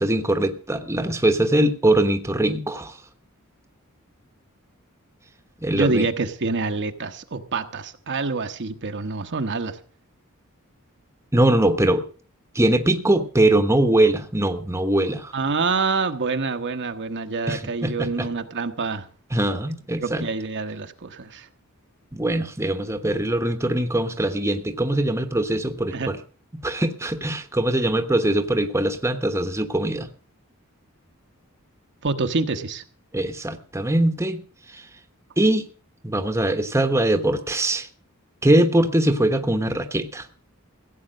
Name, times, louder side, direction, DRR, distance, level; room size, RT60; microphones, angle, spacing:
voice 1, 0.0-2.9 5.6-6.1 11.3-12.0 12.5-15.3 17.5-18.3 19.3-20.3 22.1-26.2 26.6-30.1 33.1-34.4 34.7-34.8 35.4-35.7 36.0-37.9 38.4-40.2, right 1 dB, 15° right, 8 dB, 1.1 m, -22 dB
voice 2, 5.7-9.8 15.3-19.0 20.0-21.5 25.9-26.1 32.0-32.8, right 4 dB, 55° right, 7 dB, 1.0 m, -26 dB
16.0 x 8.6 x 6.4 m, 0.41 s
head